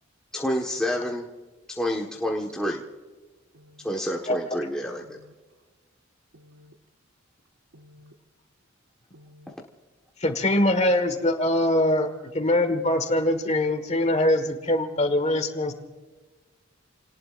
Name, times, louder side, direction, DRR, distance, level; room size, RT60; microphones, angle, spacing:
voice 1, 0.3-1.3 1.7-2.8 3.8-5.2, equal, 5° left, -2 dB, 1.4 m, -28 dB
voice 2, 3.5-3.9 5.0-5.3 6.3-6.7 7.7-8.1 9.1-9.5 12.0-12.3 13.5-13.7 14.9-15.1, equal, 80° right, 6 dB, 1.1 m, -52 dB
voice 3, 10.2-12.1 12.3-15.7, left 1 dB, 35° left, 8 dB, 1.6 m, -23 dB
29.5 x 19.0 x 2.6 m, 1.3 s
head